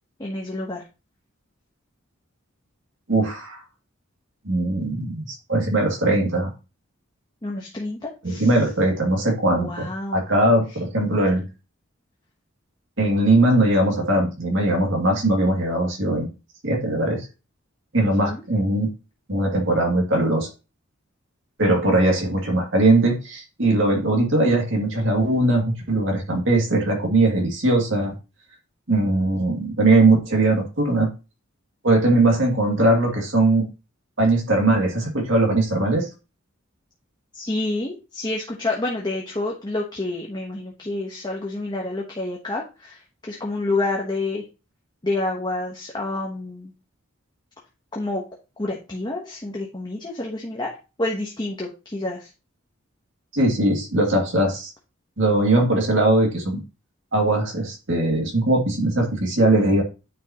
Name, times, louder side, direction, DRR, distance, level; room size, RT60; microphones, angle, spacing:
voice 1, 0.2-0.8 7.4-8.5 9.5-10.3 11.0-11.2 18.0-18.4 37.3-44.4 45.0-46.7 47.9-48.2 48.6-50.7 51.0-52.3, left 2 dB, 20° left, -2 dB, 1.2 m, -28 dB
voice 2, 3.1-3.6 4.4-6.5 8.2-11.4 13.0-16.3 16.6-17.3 17.9-18.9 19.3-20.5 21.6-28.1 28.9-31.1 31.8-33.7 34.2-36.1 53.3-54.7 55.2-56.6 57.1-59.8, right 2 dB, 65° right, 0 dB, 2.5 m, -20 dB
9.5 x 5.6 x 3.0 m, 0.30 s
head